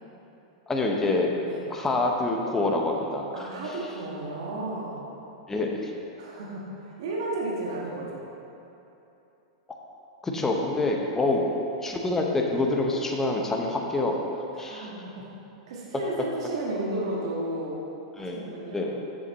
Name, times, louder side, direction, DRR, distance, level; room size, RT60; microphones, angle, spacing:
voice 1, 0.7-1.3 1.7-3.5 5.5-5.9 10.2-11.4 11.8-14.2 14.6-14.9 18.2-18.4 18.7-19.0, left 2 dB, 15° left, 0 dB, 0.9 m, -26 dB
voice 2, 3.3-5.1 6.2-8.2 11.2-11.4 14.5-15.3 15.7-17.8 18.2-18.9, right 2 dB, 70° right, -4 dB, 1.5 m, -33 dB
7.0 x 7.0 x 4.2 m, 3.0 s
hypercardioid pair, 115°, 3 cm